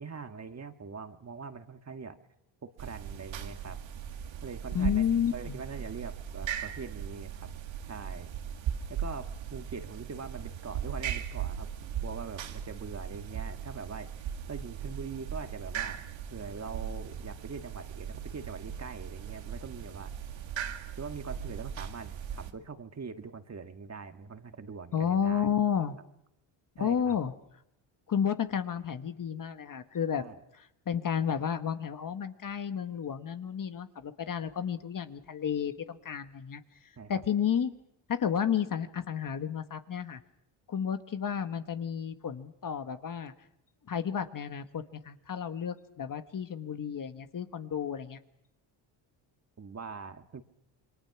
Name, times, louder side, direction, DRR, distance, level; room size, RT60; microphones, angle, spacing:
voice 1, 0.0-2.2 2.6-3.8 4.4-7.5 7.9-8.3 8.9-20.1 21.0-25.5 26.8-27.2 30.2-30.4 37.0-37.2 49.6-50.4, right 5 dB, 35° right, 7 dB, 1.7 m, -43 dB
sound 1, 2.8-22.5, right 8 dB, 70° right, 2.0 m, -38 dB
voice 2, 4.7-5.6 24.9-26.0 26.7-27.3 28.1-30.2 30.6-36.6 37.1-37.7 38.1-40.2 40.7-43.3 43.9-48.2, left 8 dB, 40° left, 9 dB, 1.5 m, -31 dB
28.5 x 22.5 x 6.0 m, 0.80 s
cardioid pair, 90°, 48 cm